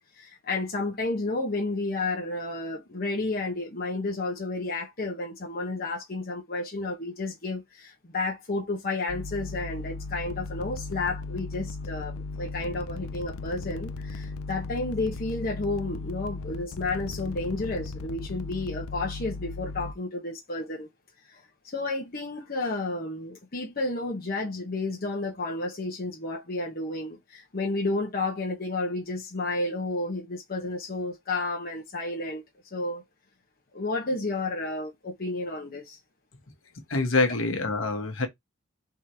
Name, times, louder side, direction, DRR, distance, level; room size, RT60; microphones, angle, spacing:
voice 1, 0.2-20.9 21.3-32.4 32.7-33.0 33.7-36.0, left 2 dB, 40° left, 1.0 m, -31 dB
sound 1, 9.1-19.9, left 3 dB, 80° left, 0.5 m, -37 dB
voice 2, 36.9-38.3, left 3 dB, 65° left, 1.2 m, -25 dB
3.7 x 3.2 x 4.4 m
head